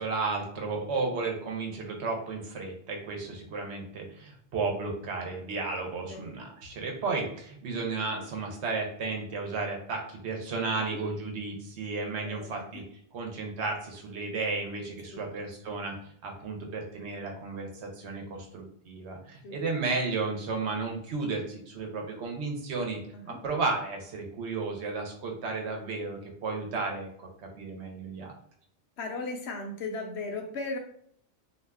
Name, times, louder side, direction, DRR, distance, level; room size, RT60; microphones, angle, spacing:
voice 1, 0.0-12.8 13.1-15.9 16.2-23.0 23.2-28.3, right 3 dB, 75° right, 1 dB, 1.0 m, -33 dB
voice 2, 12.2-12.8 15.1-15.2 19.4-19.6 23.1-23.4 29.0-30.8, left 3 dB, 70° left, 3 dB, 0.8 m, -37 dB
2.4 x 2.4 x 3.3 m, 0.67 s
omnidirectional pair, 1.2 m